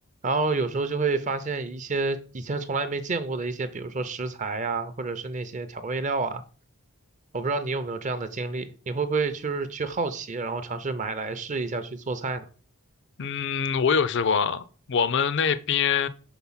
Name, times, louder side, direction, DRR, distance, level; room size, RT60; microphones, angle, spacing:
voice 1, 0.2-6.4 7.3-12.5, right 3 dB, 35° right, 0.5 m, -29 dB
voice 2, 13.2-16.1, left 6 dB, 55° left, 0.4 m, -24 dB
5.9 x 3.8 x 5.6 m
head